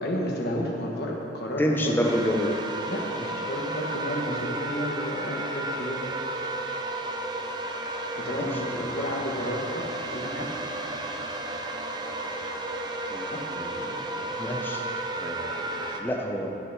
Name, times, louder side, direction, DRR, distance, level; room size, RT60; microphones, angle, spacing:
voice 1, 0.0-2.0 2.9-6.0 8.1-9.8 10.1-10.5 13.3-13.4, equal, 55° left, -2 dB, 1.4 m, -32 dB
voice 2, 1.6-2.6 8.3-8.9 13.1-14.8 15.2-16.6, equal, 10° left, 0 dB, 0.8 m, -29 dB
sound 1, 2.0-16.0, right 2 dB, 20° right, 0.5 m, -33 dB
10.5 x 7.0 x 6.2 m, 3.0 s
head